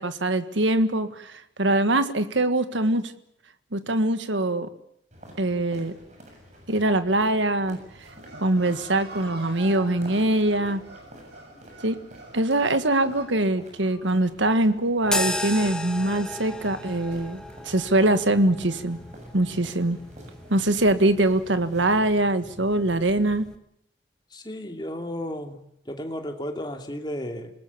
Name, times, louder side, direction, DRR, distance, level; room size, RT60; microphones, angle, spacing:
voice 1, 0.0-3.1 3.7-4.7 5.4-5.9 6.7-7.8 8.3-10.8 11.8-12.0 12.3-19.0 19.3-20.0 20.5-23.4, right 1 dB, 85° right, 11 dB, 1.7 m, -23 dB
sound 1, 5.1-22.1, equal, 40° right, 7.4 m, -49 dB
sound 2, 8.1-13.3, right 1 dB, 65° right, 7.3 m, -45 dB
sound 3, 15.0-23.6, left 1 dB, 5° left, 1.4 m, -35 dB
voice 2, 24.3-27.5, left 1 dB, 25° left, 4 dB, 2.8 m, -34 dB
27.5 x 20.0 x 7.3 m, 0.74 s
head